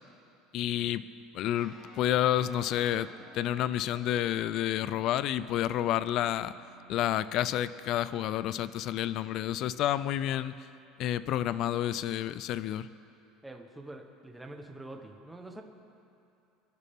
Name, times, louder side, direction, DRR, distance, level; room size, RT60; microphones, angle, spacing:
voice 1, 0.5-1.1 1.3-3.1 3.3-6.5 6.9-10.5 11.0-12.9, left 12 dB, 45° left, 15 dB, 0.4 m, -29 dB
sound 1, 1.5-12.4, right 3 dB, 20° left, 4.7 m, -57 dB
voice 2, 13.4-15.6, right 2 dB, 5° right, 3 dB, 1.0 m, -45 dB
28.5 x 11.0 x 3.6 m, 2.7 s
cardioid pair, 170°, 0 cm